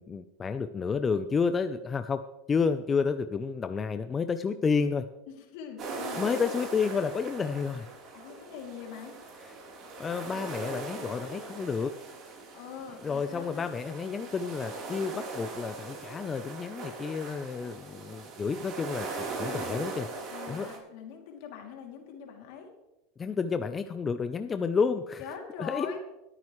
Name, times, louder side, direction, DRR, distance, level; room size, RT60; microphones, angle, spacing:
voice 1, 0.0-2.2 2.5-5.1 6.2-7.9 10.0-11.9 13.0-20.1 20.5-20.7 23.2-25.2 25.6-25.9, left 5 dB, 25° left, 9 dB, 0.6 m, -30 dB
voice 2, 5.3-6.2 8.1-9.2 12.5-13.7 19.4-19.8 20.3-22.7 25.2-26.0, left 7 dB, 70° left, 2 dB, 2.7 m, -43 dB
sound 1, 5.8-20.8, right 3 dB, 45° right, 3.7 m, -40 dB
21.5 x 8.9 x 3.2 m, 0.97 s
supercardioid pair, 110°, 0 cm